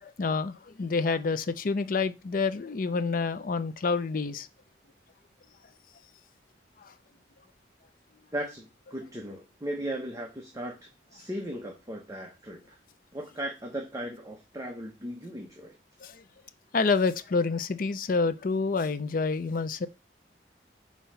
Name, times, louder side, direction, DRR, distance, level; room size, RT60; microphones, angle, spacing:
voice 1, 0.0-4.5 6.8-6.9 16.0-16.2 16.7-19.9, left 4 dB, 50° left, 0.5 m, -28 dB
voice 2, 8.3-12.8 13.1-15.7, right 1 dB, 20° right, 1.0 m, -37 dB
5.6 x 3.0 x 5.6 m
head